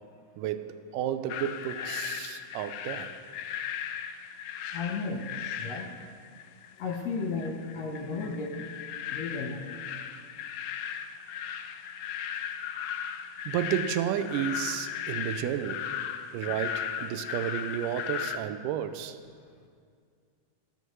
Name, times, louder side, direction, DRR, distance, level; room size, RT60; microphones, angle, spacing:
voice 1, 0.4-3.2 13.5-15.9 16.3-19.2, right 10 dB, 85° right, 10 dB, 2.1 m, -32 dB
sound 1, 1.3-18.4, left 9 dB, 85° left, 1.6 m, -37 dB
voice 2, 4.7-5.3 5.6-5.9 6.8-8.7 9.1-9.7, left 4 dB, 70° left, 1 dB, 1.7 m, -34 dB
27.0 x 9.3 x 3.1 m, 2.1 s
omnidirectional pair, 3.8 m